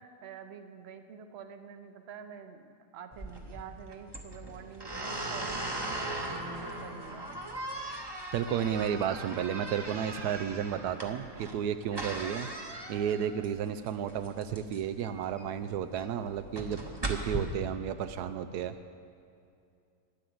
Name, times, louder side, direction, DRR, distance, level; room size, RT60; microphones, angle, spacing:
voice 1, 0.0-7.3 10.1-10.3 13.1-13.3, right 7 dB, 50° right, 8 dB, 0.9 m, -48 dB
sound 1, 3.1-17.4, right 1 dB, 20° right, 0.8 m, -39 dB
voice 2, 8.3-12.5 12.9-18.7, right 8 dB, 85° right, 9 dB, 1.1 m, -32 dB
12.0 x 10.0 x 7.8 m, 2.4 s
omnidirectional pair, 1.7 m